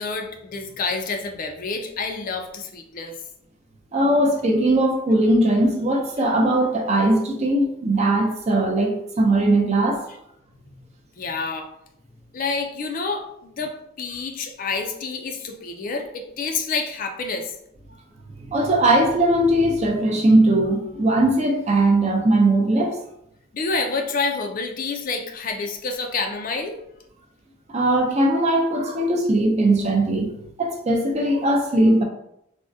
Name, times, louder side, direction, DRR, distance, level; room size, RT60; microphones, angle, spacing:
voice 1, 0.0-3.2 11.2-11.7 12.3-17.5 23.5-26.8, left 4 dB, 45° left, 4 dB, 0.4 m, -28 dB
voice 2, 3.9-10.0 18.5-23.0 27.7-32.0, right 1 dB, 35° right, 2 dB, 0.5 m, -19 dB
3.5 x 2.1 x 2.6 m, 0.76 s
head